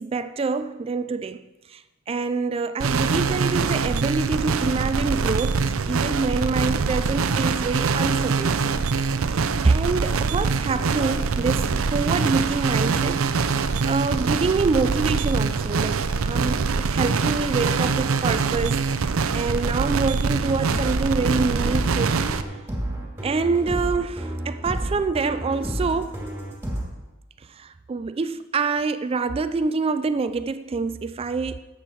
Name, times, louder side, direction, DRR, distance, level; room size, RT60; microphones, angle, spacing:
voice 1, 0.0-8.8 9.2-22.2 23.2-26.2 27.5-31.6, right 4 dB, 30° right, 0.3 m, -26 dB
sound 1, 2.8-22.4, right 4 dB, 85° right, 0.6 m, -24 dB
sound 2, 20.3-26.8, right 1 dB, 10° right, 2.4 m, -30 dB
12.5 x 8.0 x 4.5 m
head